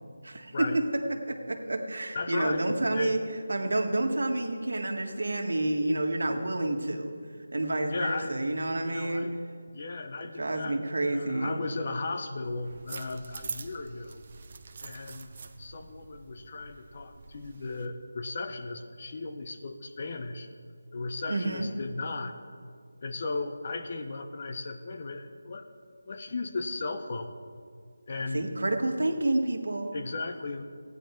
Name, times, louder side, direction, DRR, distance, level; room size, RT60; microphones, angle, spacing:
voice 1, 0.2-0.7 1.3-3.2 3.5-7.1 7.5-9.3 10.2-11.6 21.3-21.7 28.3-29.9, right 2 dB, 80° right, 4 dB, 1.6 m, -29 dB
voice 2, 2.1-3.2 7.9-8.3 8.8-9.3 9.7-14.2 14.8-15.3 15.6-20.5 20.9-22.4 23.0-25.7 26.0-27.3 28.1-28.5 29.9-30.6, left 3 dB, 40° left, 7 dB, 0.8 m, -36 dB
sound 1, 12.5-17.9, right 4 dB, 35° right, 0.7 m, -45 dB
15.0 x 9.5 x 4.5 m, 2.1 s
figure-of-eight pair, 170°, 0 cm